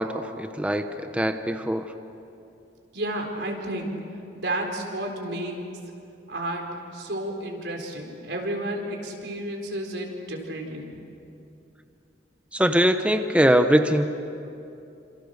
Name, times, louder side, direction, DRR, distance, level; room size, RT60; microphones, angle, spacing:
voice 1, 0.0-1.9 12.5-14.1, equal, 5° right, 7 dB, 0.9 m, -22 dB
voice 2, 2.9-4.0 4.3-5.8 6.3-6.7 6.9-10.9, right 1 dB, 75° right, 2 dB, 4.2 m, -31 dB
28.5 x 27.0 x 6.6 m, 2.7 s
head